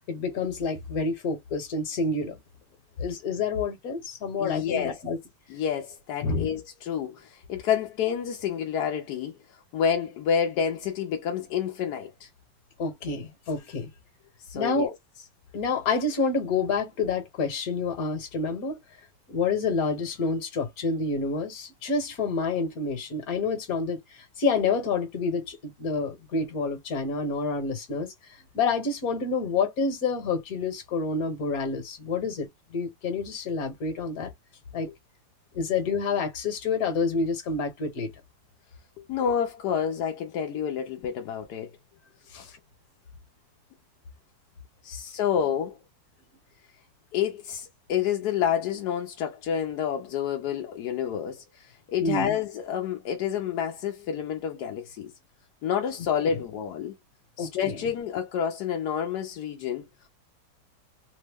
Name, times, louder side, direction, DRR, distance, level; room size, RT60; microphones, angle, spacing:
voice 1, 0.1-2.4 3.0-5.2 6.2-6.5 12.8-13.9 14.5-14.9 15.5-18.8 19.3-28.1 28.5-34.3 34.7-34.9 35.5-38.1 42.3-42.4 52.0-52.4 56.3-56.4 57.4-57.8, left 4 dB, 55° left, 1.3 m, -28 dB
voice 2, 4.4-5.0 5.5-12.3 14.4-14.9 39.1-41.7 42.3-42.5 44.8-45.8 47.1-55.1 55.6-56.9 57.4-59.9, left 8 dB, 70° left, 1.0 m, -29 dB
3.5 x 2.0 x 3.4 m
omnidirectional pair, 2.2 m